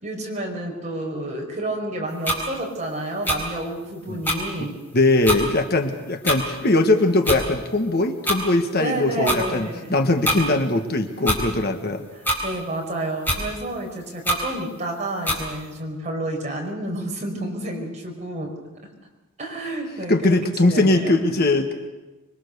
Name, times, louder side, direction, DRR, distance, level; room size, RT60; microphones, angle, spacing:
voice 1, 0.0-4.8 8.8-9.9 12.4-18.5 19.4-20.4 20.6-21.2, right 1 dB, 30° right, 0 dB, 5.2 m, -30 dB
sound 1, 2.2-2.4 3.2-3.4 4.2-4.4 5.2-5.4 6.2-6.4 7.2-7.4 8.2-8.4 9.2-9.4 10.2-10.4 11.2-11.4 12.2-12.4 13.2-13.4 14.2-14.4 15.2-15.4, equal, 10° left, 4.2 m, -23 dB
voice 2, 4.9-12.0 20.1-21.9, left 2 dB, 45° left, 6 dB, 1.5 m, -21 dB
25.5 x 23.0 x 6.9 m, 1.1 s
head